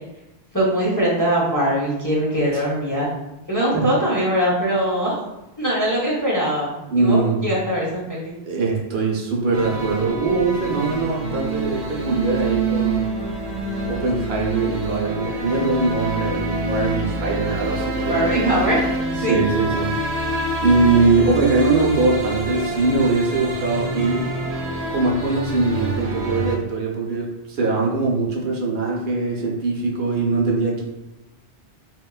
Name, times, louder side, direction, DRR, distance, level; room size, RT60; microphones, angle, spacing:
voice 1, 0.5-3.1 3.5-5.2 5.6-8.4 18.1-18.8 19.2-19.3, right 1 dB, 25° left, -6 dB, 0.5 m, -21 dB
voice 2, 6.9-7.5 8.4-13.1 13.9-18.3 19.2-20.0 20.6-24.3 24.9-30.8, right 3 dB, 70° right, -2 dB, 0.8 m, -21 dB
sound 1, 9.5-26.6, right 2 dB, 50° right, 0.5 m, -26 dB
3.7 x 2.1 x 2.3 m, 0.95 s
omnidirectional pair, 1.1 m